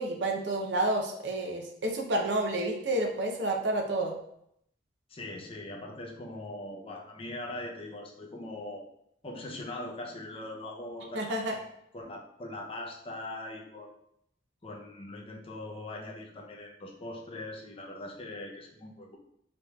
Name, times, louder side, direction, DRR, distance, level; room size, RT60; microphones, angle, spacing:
voice 1, 0.0-4.2 11.1-11.6, right 1 dB, 80° right, 2 dB, 0.6 m, -30 dB
voice 2, 5.1-8.9 9.2-11.5 11.9-13.9 14.6-19.2, left 1 dB, 30° left, 1 dB, 0.6 m, -41 dB
5.0 x 3.0 x 2.3 m, 0.74 s
head